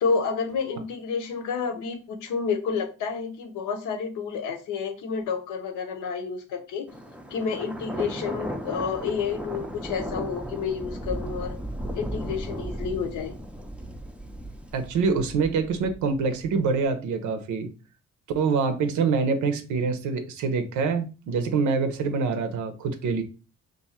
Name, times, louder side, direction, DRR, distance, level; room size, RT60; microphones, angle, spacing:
voice 1, 0.0-6.9 7.3-11.6 11.9-13.3, left 5 dB, 85° left, 0.7 m, -30 dB
Thunder, 6.9-16.7, equal, 5° right, 0.4 m, -36 dB
voice 2, 14.7-17.7 18.3-23.2, right 5 dB, 80° right, 0.7 m, -25 dB
2.6 x 2.3 x 4.1 m
cardioid pair, 90°, 30 cm